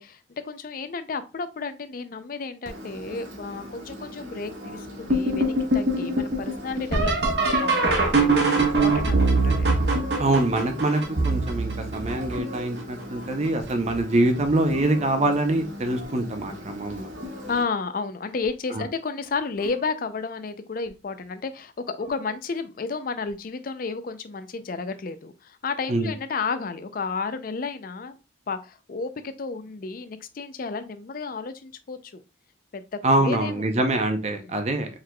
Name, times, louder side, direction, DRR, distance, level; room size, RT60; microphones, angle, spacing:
voice 1, 0.0-9.7 17.5-28.2 28.5-32.2 32.7-33.8 34.4-34.6, left 4 dB, 45° left, 11 dB, 0.4 m, -32 dB
Engine, 2.7-17.6, equal, 80° right, 1.5 m, -40 dB
sound 1, 5.1-12.8 13.4-14.0 14.4-15.1 16.3-16.4 17.2-17.5 19.6-19.8 22.1-22.2, right 2 dB, 60° right, 1.0 m, -23 dB
voice 2, 10.2-17.1 18.7-18.8 25.9-26.1 33.0-34.9, right 2 dB, 35° right, 6 dB, 0.6 m, -24 dB
4.6 x 3.7 x 2.2 m, 0.29 s
head